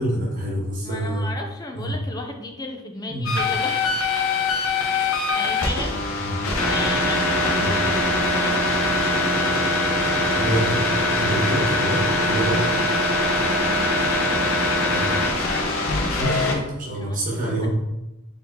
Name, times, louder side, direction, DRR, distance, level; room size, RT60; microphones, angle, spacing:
voice 1, 0.0-1.3 1.7-1.9 3.1-3.3 6.2-6.4 7.6-7.7 10.4-10.8 11.1-12.7 14.9-15.1 16.1-17.7, right 1 dB, 40° right, -4 dB, 1.3 m, -26 dB
voice 2, 0.8-3.9 5.3-6.0 6.6-9.9 13.4-14.0 17.0-17.7, left 2 dB, 20° left, 3 dB, 0.4 m, -35 dB
sound 1, 3.3-16.5, left 2 dB, 90° left, 0.7 m, -22 dB
4.3 x 3.6 x 2.8 m, 0.94 s
head